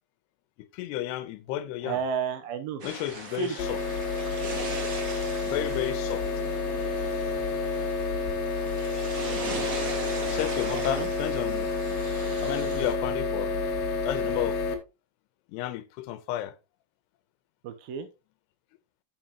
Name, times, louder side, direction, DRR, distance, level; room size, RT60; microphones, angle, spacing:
voice 1, 0.7-2.0 2.8-3.8 5.4-6.2 10.2-11.7 12.4-13.5 14.0-14.6 15.5-16.5, left 13 dB, 90° left, 3.0 m, -32 dB
voice 2, 1.8-2.8 3.4-3.6 10.7-11.1 17.6-18.1, right 7 dB, 75° right, 2.4 m, -31 dB
sound 1, 2.8-12.9, right 3 dB, 90° right, 0.7 m, -39 dB
sound 2, 3.6-14.8, left 4 dB, 70° left, 2.8 m, -29 dB
9.6 x 7.5 x 2.9 m
omnidirectional pair, 4.7 m